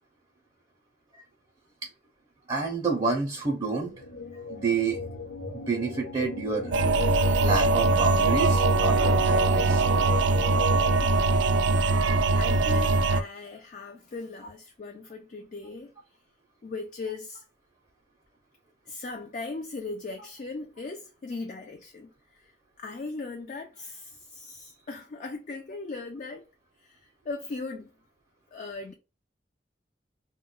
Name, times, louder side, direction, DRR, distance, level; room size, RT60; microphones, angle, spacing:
voice 1, 2.5-3.9 4.5-5.0 5.5-6.8 7.4-9.8, right 4 dB, 25° right, 0.5 m, -29 dB
sound 1, 3.7-11.0, left 3 dB, 65° left, 0.9 m, -36 dB
sound 2, 6.7-13.2, right 3 dB, 80° right, 0.3 m, -22 dB
voice 2, 11.0-11.4 12.4-15.9 16.6-17.4 18.9-22.5 22.8-26.4 26.8-27.0 27.3-27.9 28.5-28.9, left 3 dB, 45° left, 0.4 m, -38 dB
2.1 x 2.1 x 3.7 m
head